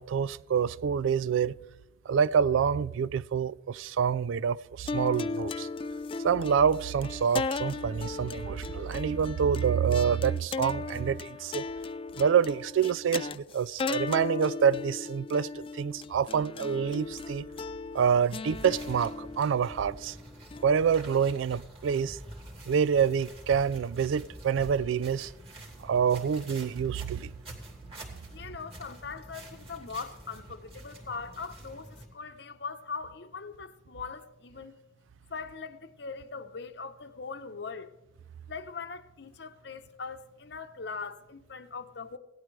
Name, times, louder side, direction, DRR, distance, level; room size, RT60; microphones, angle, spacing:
voice 1, 0.0-1.6 2.1-5.7 6.2-11.7 12.2-17.5 17.9-20.2 20.6-22.2 22.7-25.3 25.8-27.3, right 7 dB, 80° right, 0.3 m, -27 dB
sound 1, 4.9-21.3, left 4 dB, 30° left, 0.3 m, -37 dB
sound 2, 18.5-32.1, right 1 dB, 30° right, 2.7 m, -47 dB
voice 2, 28.3-34.8 35.3-37.9 38.5-42.2, left 5 dB, 60° left, 0.9 m, -41 dB
17.5 x 12.5 x 3.2 m
head